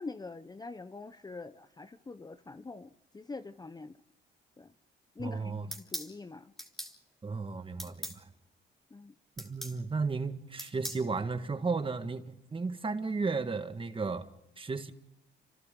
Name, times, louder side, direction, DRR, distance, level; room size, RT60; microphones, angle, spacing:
voice 1, 0.0-4.0 4.6-4.7 5.2-6.5 8.9-9.1, left 3 dB, 20° left, 0.8 m, -44 dB
voice 2, 5.2-5.7 7.2-8.3 9.4-14.3 14.6-14.9, right 4 dB, 25° right, 1.7 m, -34 dB
sound 1, 5.7-6.1 6.6-6.9 7.8-8.2 9.4-9.8 10.6-11.0, equal, ahead, 3.3 m, -40 dB
29.5 x 27.0 x 3.9 m
cardioid pair, 90°, 20 cm